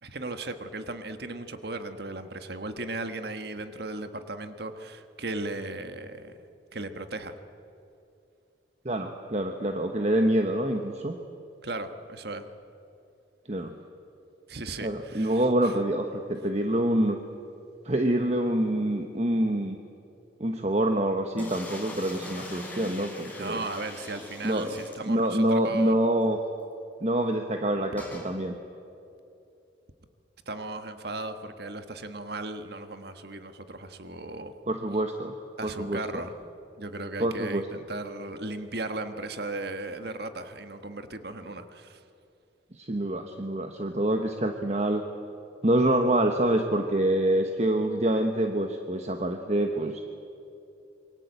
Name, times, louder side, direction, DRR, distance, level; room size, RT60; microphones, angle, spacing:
voice 1, 0.0-6.3 6.7-7.4 11.6-12.5 14.5-15.7 23.4-25.9 30.4-34.5 35.6-36.3 36.8-42.0, right 2 dB, 55° right, 8 dB, 1.6 m, -36 dB
voice 2, 8.8-11.1 13.5-13.7 14.8-17.2 17.8-19.8 20.4-23.6 24.4-24.7 25.1-26.4 27.0-28.6 34.7-35.3 35.6-36.0 37.2-37.6 42.7-45.1 45.6-50.1, right 1 dB, 35° right, 4 dB, 1.3 m, -26 dB
sound 1, 21.4-25.6 25.9-26.0 26.2-26.3 28.0-28.3, left 1 dB, 10° left, 4.7 m, -42 dB
27.5 x 23.5 x 8.2 m, 2.7 s
head